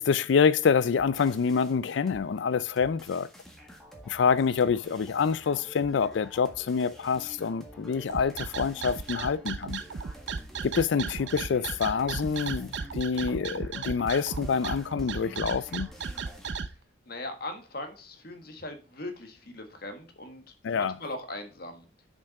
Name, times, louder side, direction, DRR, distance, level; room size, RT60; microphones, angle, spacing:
voice 1, 0.0-3.3 4.1-9.8 10.6-15.9 20.6-20.9, left 6 dB, 70° left, 0.4 m, -26 dB
sound 1, 1.0-2.3 2.8-16.5, equal, ahead, 1.6 m, -49 dB
sound 2, 8.1-16.7, right 5 dB, 65° right, 0.5 m, -35 dB
voice 2, 17.1-20.4 20.7-21.9, left 2 dB, 55° left, 1.5 m, -39 dB
7.0 x 5.5 x 5.8 m
head